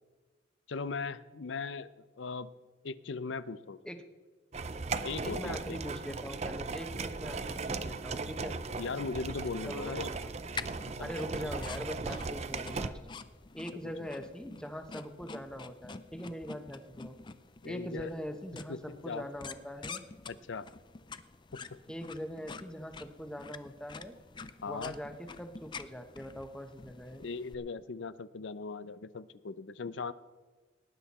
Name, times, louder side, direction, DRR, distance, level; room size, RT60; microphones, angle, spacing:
voice 1, 0.7-2.5 2.8-3.8 5.0-5.8 8.7-10.1 11.0-11.1 11.4-11.5 13.8-13.9 17.6-18.1 18.7-19.3 20.3-20.7 21.5-21.8 24.6-24.9 27.2-30.1, left 4 dB, 75° left, 16 dB, 0.5 m, -39 dB
sound 1, 4.5-12.9, right 4 dB, 35° right, 0.5 m, -37 dB
voice 2, 5.2-8.5 9.6-10.2 11.0-13.0 13.5-17.2 17.6-20.0 21.9-24.2 24.7-25.1 25.4-27.2, equal, 5° left, 6 dB, 0.9 m, -42 dB
sound 2, 10.5-27.5, left 4 dB, 25° left, 0.4 m, -48 dB
18.5 x 10.0 x 4.2 m, 1.3 s
head